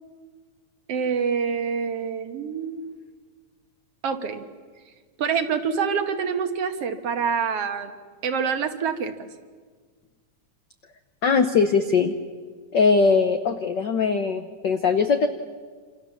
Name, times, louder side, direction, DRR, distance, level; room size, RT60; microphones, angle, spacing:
voice 1, 0.9-2.9 4.0-4.4 5.2-7.9 8.2-9.3, right 6 dB, 60° right, 7 dB, 2.2 m, -26 dB
voice 2, 11.2-12.1 12.7-15.3, left 5 dB, 70° left, 8 dB, 1.0 m, -20 dB
27.5 x 27.0 x 7.2 m, 1.5 s
omnidirectional pair, 3.3 m